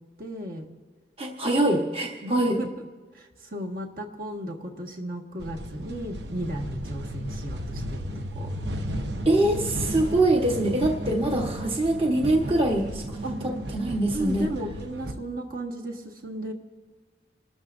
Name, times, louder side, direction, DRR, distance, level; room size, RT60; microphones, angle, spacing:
voice 1, 0.2-0.7 2.2-2.7 3.1-8.0 8.3-8.5 13.2-13.4 14.1-16.5, right 1 dB, 55° right, 1 dB, 1.6 m, -34 dB
voice 2, 1.2-2.6 9.2-14.5, right 1 dB, 30° right, 1 dB, 1.2 m, -24 dB
sound 1, 5.4-15.1, equal, 80° right, 1.0 m, -34 dB
28.0 x 13.0 x 2.6 m, 1.4 s
head